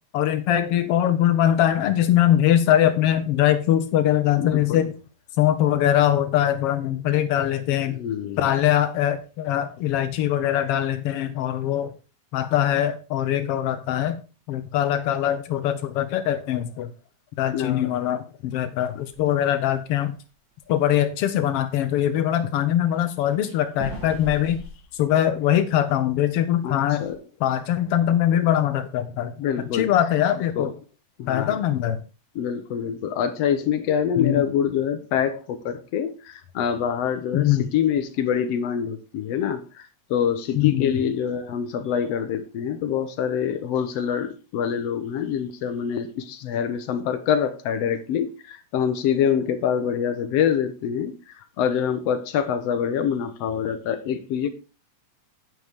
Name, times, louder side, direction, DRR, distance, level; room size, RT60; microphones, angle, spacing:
voice 1, 0.1-4.9 5.4-8.0 8.4-11.9 12.3-14.2 14.5-16.9 17.4-20.1 20.7-24.6 24.9-27.0 27.4-29.3 29.7-30.7 31.3-32.0 34.2-34.4 37.3-37.7 40.6-41.0, left 11 dB, 90° left, 9 dB, 1.3 m, -22 dB
voice 2, 4.4-4.9 7.9-8.4 17.5-17.9 26.6-27.2 29.4-29.9 30.6-30.7 31.2-31.6 32.4-54.5, left 8 dB, 70° left, 10 dB, 1.7 m, -25 dB
sound 1, 19.1-19.3 19.7-20.1 20.5-20.6 21.0-21.1 23.5-25.9 26.3-26.4 26.7-27.1, right 3 dB, 70° right, 5.0 m, -39 dB
9.5 x 8.1 x 3.5 m, 0.34 s
omnidirectional pair, 3.5 m